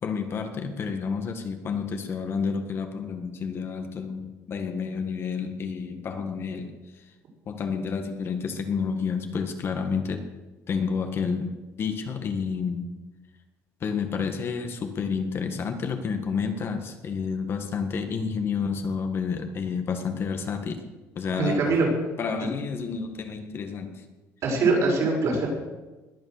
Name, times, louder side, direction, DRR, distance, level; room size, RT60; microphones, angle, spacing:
voice 1, 0.0-6.8 7.5-10.2 10.7-12.9 13.8-20.8 21.1-21.7 22.2-24.0, left 5 dB, 40° left, 5 dB, 1.7 m, -30 dB
voice 2, 21.3-21.9 24.4-25.5, right 3 dB, 55° right, -1 dB, 6.1 m, -23 dB
21.0 x 8.7 x 6.7 m, 1.2 s
cardioid pair, 145°, 6 cm